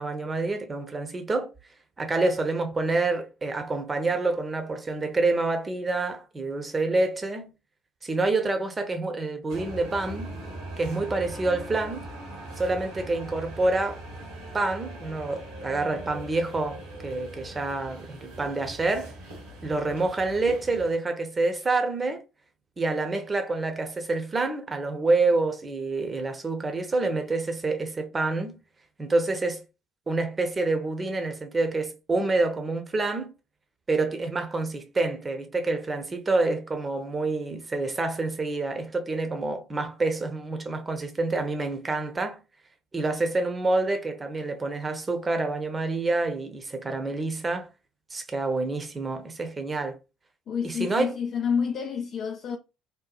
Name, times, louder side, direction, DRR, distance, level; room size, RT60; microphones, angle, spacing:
voice 1, 0.0-1.5 2.0-7.5 8.0-10.3 10.8-12.1 12.6-14.0 14.5-19.1 19.6-22.2 22.8-28.6 29.0-29.6 30.1-33.3 33.9-42.4 42.9-47.7 48.1-50.0 50.6-51.1, right 3 dB, 25° right, 0.7 m, -27 dB
sound 1, 9.5-21.0, right 1 dB, 75° right, 1.0 m, -41 dB
voice 2, 50.5-52.6, left 6 dB, 50° left, 0.4 m, -28 dB
2.9 x 2.1 x 2.3 m
figure-of-eight pair, 55°, 0 cm